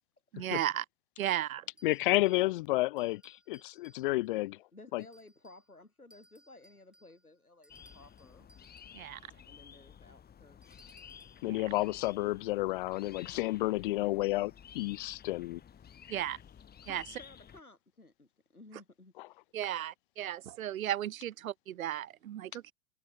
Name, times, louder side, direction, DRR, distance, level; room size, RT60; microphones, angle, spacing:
voice 1, 0.3-0.8 1.2-1.6 8.9-9.2 11.5-11.6 16.1-16.4 16.9-17.0 19.5-22.7, right 12 dB, 70° right, 0.7 m, -35 dB
voice 2, 1.8-4.6 4.9-5.0 11.4-15.6, left 19 dB, 40° left, 0.4 m, -31 dB
sound 1, 1.8-2.5 3.0-4.4 5.0-5.7 6.1-9.0 10.6-11.5, right 1 dB, ahead, 5.8 m, -64 dB
voice 3, 4.7-8.5 9.5-11.0 16.8-19.1, left 2 dB, 85° left, 3.8 m, -56 dB
sound 2, 7.7-17.6, left 8 dB, 20° left, 3.3 m, -53 dB
open air
figure-of-eight pair, 85°, 43 cm